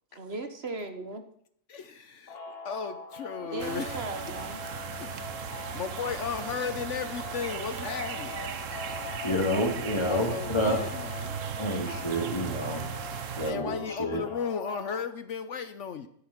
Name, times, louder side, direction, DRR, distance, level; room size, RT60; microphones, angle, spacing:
voice 1, 0.2-1.2 3.4-4.6, right 3 dB, 50° right, 7 dB, 1.5 m, -37 dB
voice 2, 1.7-4.1 5.0-8.4 10.1-11.4 13.4-16.1, left 6 dB, 65° left, 11 dB, 1.2 m, -35 dB
sound 1, 2.3-15.0, left 3 dB, 50° left, 1.5 m, -42 dB
sound 2, 3.6-13.5, right 7 dB, 70° right, 1.3 m, -37 dB
voice 3, 9.2-10.8 11.6-12.9 13.4-14.2, equal, 20° left, 2 dB, 2.6 m, -29 dB
10.0 x 8.9 x 9.9 m, 0.66 s
omnidirectional pair, 1.4 m